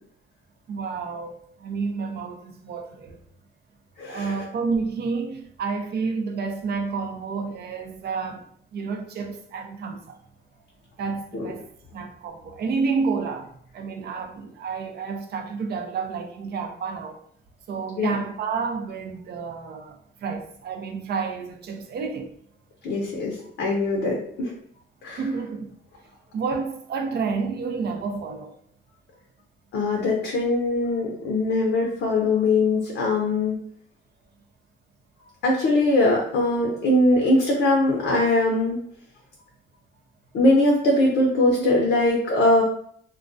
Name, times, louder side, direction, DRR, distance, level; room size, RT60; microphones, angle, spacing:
voice 1, 0.7-1.3 1.6-3.2 4.1-10.2 11.0-11.6 11.9-17.2 17.7-22.3 25.2-25.8 26.3-28.5 41.6-41.7, right 5 dB, 55° right, 0.5 m, -30 dB
voice 2, 4.0-4.3 11.3-11.5 18.0-18.2 22.8-24.5 25.0-25.2 29.7-33.6 35.4-38.8 40.3-42.6, left 2 dB, 70° left, 0.6 m, -21 dB
2.2 x 2.2 x 2.5 m
cardioid pair, 90°, 20 cm